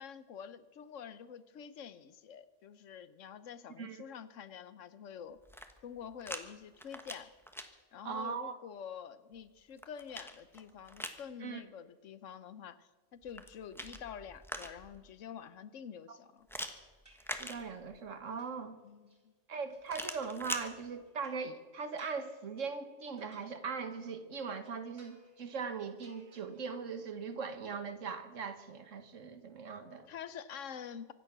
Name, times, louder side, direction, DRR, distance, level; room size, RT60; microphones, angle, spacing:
voice 1, 0.0-5.4 5.8-7.3 7.9-16.5 18.8-19.3 30.1-31.1, left 8 dB, 80° left, 14 dB, 1.2 m, -47 dB
sound 1, 5.4-6.4 6.7-7.7 9.4-11.2 13.2-15.0 16.5-18.1 19.9-20.7, equal, ahead, 1.1 m, -43 dB
voice 2, 8.0-8.6 11.4-11.6 16.1-16.2 17.4-18.8 19.5-30.1, right 5 dB, 85° right, 9 dB, 1.7 m, -40 dB
sound 2, 17.1-17.8 18.1-19.2 19.7-20.4 20.7-24.2 24.5-25.6 25.9-26.9 27.2-27.8, right 1 dB, 25° right, 3.9 m, -65 dB
24.5 x 9.6 x 6.0 m, 1.4 s
omnidirectional pair, 1.3 m